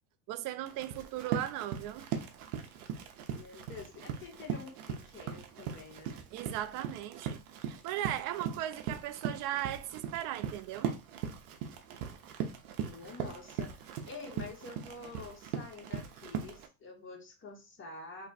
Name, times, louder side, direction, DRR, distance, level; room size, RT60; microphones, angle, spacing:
voice 1, 0.3-2.1 6.3-10.9, right 13 dB, 50° right, 0.5 m, -37 dB
Run, 0.7-16.7, right 8 dB, 85° right, 0.8 m, -39 dB
voice 2, 3.3-6.2 12.8-18.3, left 4 dB, 30° left, 1.3 m, -48 dB
2.9 x 2.2 x 4.1 m
supercardioid pair, 110°, 43 cm